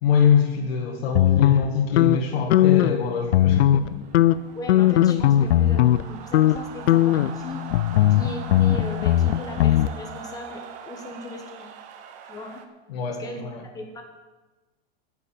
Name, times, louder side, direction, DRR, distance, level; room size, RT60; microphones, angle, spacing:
voice 1, 0.0-4.0 12.9-13.6, left 7 dB, 65° left, -1 dB, 1.9 m, -24 dB
sound 1, 1.1-3.0 3.3-3.9 4.1-6.0 6.3-6.6 6.9-9.9, left 12 dB, 90° left, 0.6 m, -19 dB
sound 2, 2.7-12.6, right 7 dB, 25° right, 0.7 m, -42 dB
voice 2, 4.5-7.6 8.1-11.7 12.2-12.6 13.2-14.0, left 2 dB, 10° left, 2 dB, 1.3 m, -38 dB
9.8 x 7.0 x 8.9 m, 1.2 s
supercardioid pair, 165°, 33 cm